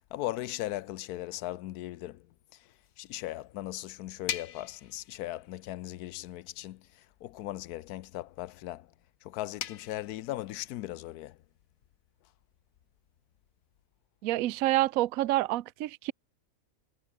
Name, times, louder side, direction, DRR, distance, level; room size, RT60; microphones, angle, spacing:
voice 1, 0.1-2.3 2.5-8.9 9.2-11.4, left 15 dB, 90° left, 1.1 m, -38 dB
sound 1, 2.7-13.9, left 9 dB, 65° left, 1.4 m, -47 dB
voice 2, 14.2-16.1, right 15 dB, 70° right, 1.0 m, -27 dB
omnidirectional pair, 1.6 m